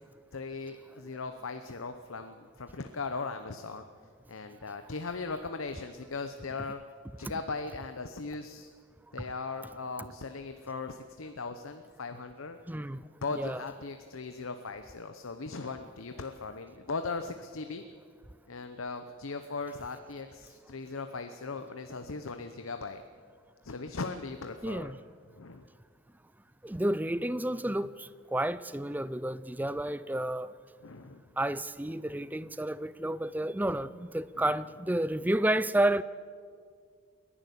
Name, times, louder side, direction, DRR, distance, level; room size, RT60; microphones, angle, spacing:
voice 1, 0.3-3.8 4.3-6.8 7.2-8.7 9.1-12.6 13.2-17.8 18.5-23.0 23.6-24.9 25.3-25.6 30.8-31.3 34.3-34.5, left 4 dB, 80° left, 0.9 m, -38 dB
voice 2, 12.7-13.0 13.3-13.6 24.6-25.0 26.6-30.5 31.4-36.0, right 1 dB, 10° right, 0.4 m, -31 dB
28.5 x 11.0 x 8.2 m
head